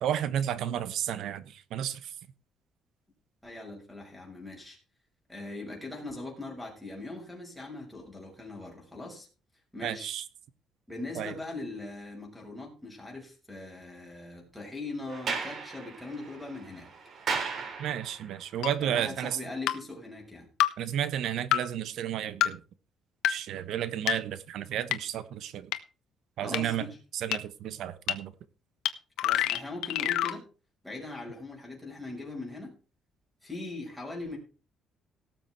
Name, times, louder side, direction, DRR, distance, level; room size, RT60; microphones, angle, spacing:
voice 1, 0.0-2.1 9.8-10.2 11.1-11.3 17.8-19.4 20.8-22.6 23.3-25.7 26.4-28.3, right 10 dB, 70° right, 15 dB, 1.2 m, -32 dB
voice 2, 3.4-4.8 5.3-9.3 9.7-10.2 10.9-16.9 18.8-20.5 26.4-27.0 29.2-30.5 30.8-32.7 33.4-34.4, left 2 dB, ahead, -1 dB, 6.0 m, -40 dB
Sliding door, 15.1-18.3, right 5 dB, 50° right, 3.6 m, -36 dB
sound 1, 18.6-18.7 19.7-19.8 20.6-20.7 21.5-21.6 22.4-22.5 23.2-23.3 24.1-24.2 24.9-25.0 25.7-25.8 26.5-26.6 27.3-27.4 28.1-28.2 28.9-29.0 29.2-30.4, left 13 dB, 90° left, 1.2 m, -26 dB
18.0 x 7.4 x 4.5 m, 0.34 s
cardioid pair, 135°, 0 cm